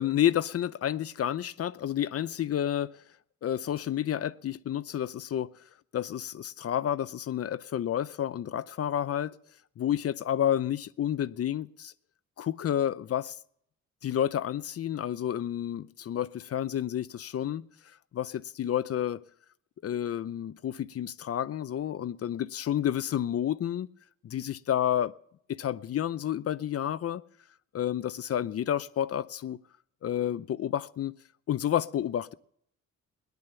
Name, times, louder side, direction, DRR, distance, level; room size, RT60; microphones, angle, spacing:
voice 1, 0.0-3.0 3.4-5.5 5.9-9.3 9.8-11.9 12.4-13.4 14.0-17.6 18.1-19.2 19.8-23.9 24.2-25.1 25.5-27.2 27.7-29.6 30.0-31.1 31.5-32.3, left 10 dB, 50° left, 0.7 m, -30 dB
18.0 x 10.5 x 6.9 m
cardioid pair, 90°, 30 cm